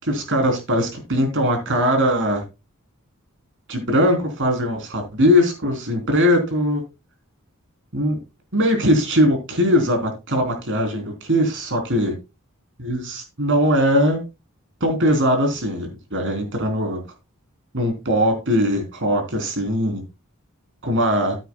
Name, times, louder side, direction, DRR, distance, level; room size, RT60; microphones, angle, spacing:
voice 1, 0.1-2.4 3.7-6.8 7.9-8.2 8.5-12.1 12.8-14.2 14.8-17.0 17.7-20.0 20.8-21.4, equal, 60° right, 4 dB, 3.6 m, -20 dB
13.5 x 9.1 x 2.3 m, 0.27 s
head